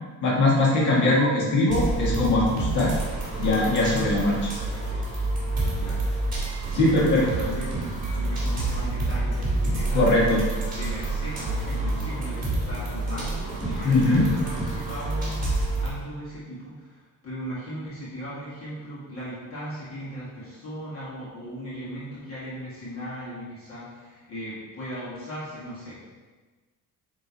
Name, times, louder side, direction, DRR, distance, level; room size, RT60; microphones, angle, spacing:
voice 1, 0.2-2.9 3.4-4.5 6.7-7.3 9.9-10.4 13.8-14.2, left 2 dB, 55° left, -5 dB, 1.9 m, -21 dB
sound 1, 1.7-15.9, right 2 dB, 20° right, 2.3 m, -28 dB
voice 2, 5.7-6.3 6.7-10.2 10.6-26.1, equal, 40° left, -10 dB, 2.2 m, -38 dB
9.4 x 3.8 x 4.2 m, 1.3 s
cardioid pair, 175°, 35 cm